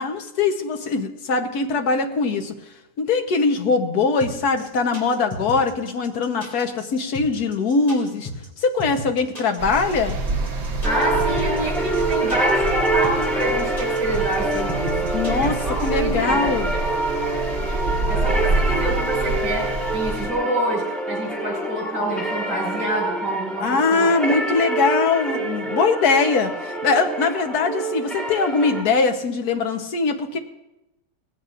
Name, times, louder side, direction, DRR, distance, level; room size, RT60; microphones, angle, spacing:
voice 1, 0.0-2.5 3.0-8.3 8.6-10.1 15.1-16.7 23.6-30.4, left 4 dB, 60° left, 5 dB, 1.5 m, -22 dB
sound 1, 4.2-15.9, left 1 dB, 20° left, 3.2 m, -35 dB
sound 2, 9.6-20.3, right 3 dB, 45° right, 1.3 m, -27 dB
sound 3, 10.8-28.8, right 2 dB, ahead, 2.5 m, -26 dB
voice 2, 10.8-15.1 15.4-16.5 18.1-24.1, right 1 dB, 80° right, -2 dB, 6.9 m, -27 dB
19.0 x 15.5 x 2.6 m, 0.95 s
omnidirectional pair, 1.9 m